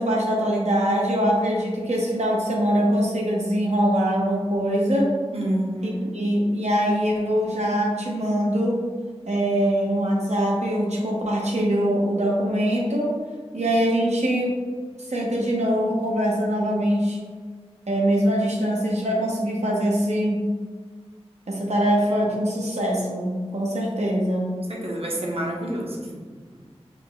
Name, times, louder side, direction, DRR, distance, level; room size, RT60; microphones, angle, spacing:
voice 1, 0.0-5.1 6.1-8.8 9.2-13.2 13.5-14.6 15.1-17.2 17.9-20.4 21.5-24.5, equal, 90° right, -2 dB, 0.9 m, -23 dB
voice 2, 5.3-6.1 24.7-26.1, right 1 dB, 60° right, -1 dB, 0.8 m, -28 dB
5.1 x 2.1 x 3.8 m, 1.5 s
wide cardioid pair, 60°, 11 cm